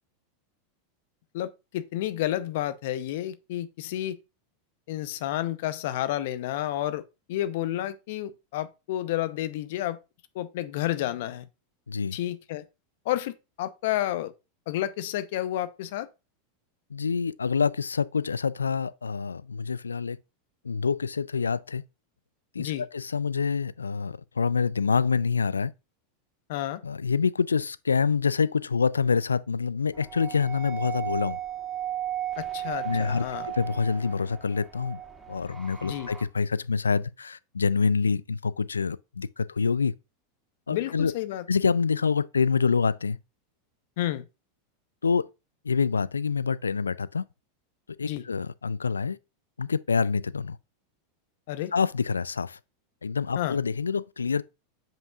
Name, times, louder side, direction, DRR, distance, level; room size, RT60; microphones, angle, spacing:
voice 1, 1.3-4.2 4.9-7.0 7.3-10.0 10.3-11.5 12.1-12.6 13.1-14.3 14.7-16.1 22.6-22.8 26.5-26.8 32.4-33.5 35.8-36.1 40.7-41.4 44.0-44.2 48.0-48.2 51.5-51.7 53.4-53.6, left 13 dB, 65° left, 0.7 m, -30 dB
voice 2, 16.9-20.2 20.6-21.8 22.5-25.7 26.8-31.4 32.8-33.3 33.5-35.0 35.3-39.9 40.7-41.1 41.5-43.2 45.0-45.3 45.6-47.2 48.0-49.2 49.6-50.6 51.7-52.6 53.0-54.4, left 5 dB, 90° left, 0.3 m, -26 dB
sound 1, 29.9-36.2, right 11 dB, 10° right, 2.2 m, -36 dB
7.4 x 5.4 x 2.4 m
hypercardioid pair, 95°, 0 cm